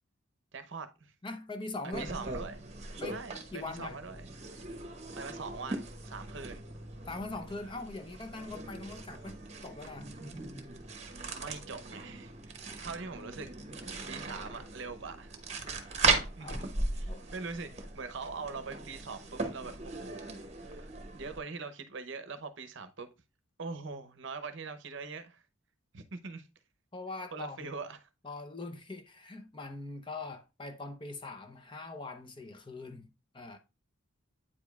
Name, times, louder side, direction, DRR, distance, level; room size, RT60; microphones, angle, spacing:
voice 1, 0.5-1.1 1.8-2.6 3.1-4.2 5.1-6.6 11.3-12.6 12.8-13.5 13.8-15.3 16.1-20.3 20.6-23.1 23.6-25.4 25.9-26.5 27.3-28.0, right 4 dB, 60° right, 0.7 m, -43 dB
voice 2, 1.2-2.1 3.0-3.2 3.5-4.0 7.1-10.1 16.4-16.7 17.1-17.2 26.9-27.8 28.2-33.6, left 2 dB, 25° left, 0.6 m, -42 dB
sound 1, 1.9-21.4, right 3 dB, 35° right, 0.9 m, -38 dB
8.5 x 5.0 x 2.3 m
head